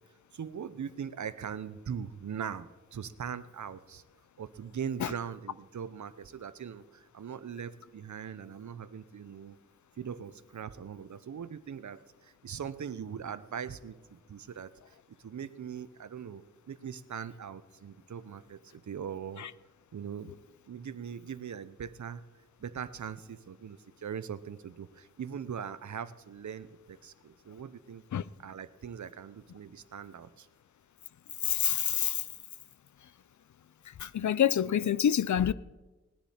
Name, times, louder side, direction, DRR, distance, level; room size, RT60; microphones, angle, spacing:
voice 1, 0.3-4.0 4.4-9.6 10.0-14.9 15.2-19.4 19.9-20.3 20.7-22.2 22.6-28.0 28.4-30.5 31.7-31.8, right 7 dB, 75° right, 0.7 m, -41 dB
voice 2, 31.4-32.2 34.0-35.5, left 9 dB, 80° left, 0.5 m, -27 dB
19.0 x 10.0 x 4.3 m
wide cardioid pair, 70°, 29 cm